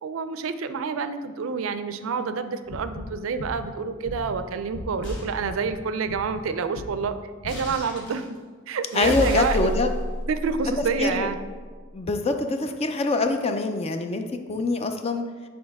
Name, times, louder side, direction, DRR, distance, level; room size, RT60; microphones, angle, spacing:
voice 1, 0.0-7.2 7.4-8.4 8.7-9.7 10.3-11.4, right 5 dB, 75° right, 11 dB, 0.4 m, -28 dB
sound 1, 2.7-5.1 5.4-5.8 6.0-6.5 6.7-7.1 7.4-7.8, left 1 dB, 80° left, 0.7 m, -38 dB
sound 2, 5.0-5.3 7.5-8.2 8.9-11.5, equal, 60° left, 1.3 m, -31 dB
voice 2, 8.9-9.9 11.0-11.3 11.9-14.2 14.5-15.2, left 3 dB, 30° left, 6 dB, 0.4 m, -24 dB
7.5 x 3.9 x 3.5 m, 1.5 s
head